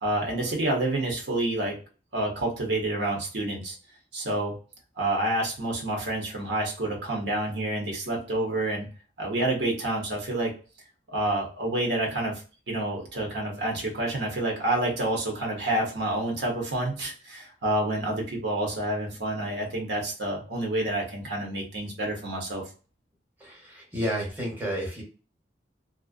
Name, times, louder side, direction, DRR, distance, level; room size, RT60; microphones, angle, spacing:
voice 1, 0.0-1.8 2.1-3.8 4.1-4.5 5.0-8.9 9.2-10.5 11.1-12.4 12.7-22.6, right 1 dB, 80° right, 0 dB, 0.9 m, -28 dB
voice 2, 23.4-25.0, equal, 10° right, -3 dB, 0.8 m, -31 dB
2.4 x 2.1 x 2.4 m, 0.36 s
head